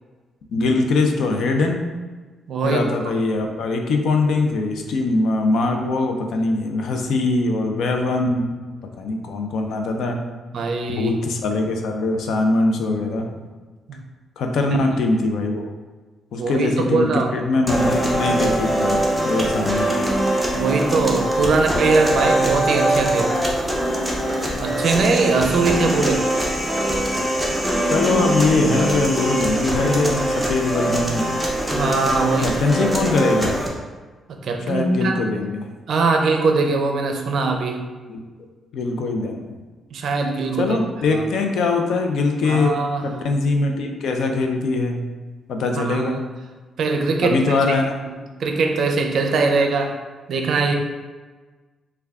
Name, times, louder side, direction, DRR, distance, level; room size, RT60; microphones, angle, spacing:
voice 1, 0.5-1.8 2.6-8.5 9.0-10.2 10.9-13.3 14.4-15.6 16.3-19.9 27.9-31.3 32.4-33.6 34.7-35.7 38.1-38.2 38.7-39.5 40.6-42.7 43.0-45.0 45.5-46.2 47.2-47.9, left 3 dB, 75° left, 4 dB, 0.4 m, -22 dB
voice 2, 2.5-2.8 10.5-11.1 13.9-14.0 16.4-17.4 20.5-23.4 24.6-26.3 31.7-32.8 34.4-35.3 35.9-37.8 39.9-40.8 41.1-41.2 42.5-43.1 45.8-46.1 46.8-47.6 48.4-50.0 50.3-50.7, right 3 dB, 65° right, 3 dB, 0.4 m, -21 dB
sound 1, 17.7-33.7, right 1 dB, ahead, 0.6 m, -22 dB
3.5 x 2.2 x 3.4 m, 1.3 s
cardioid pair, 120°, 0 cm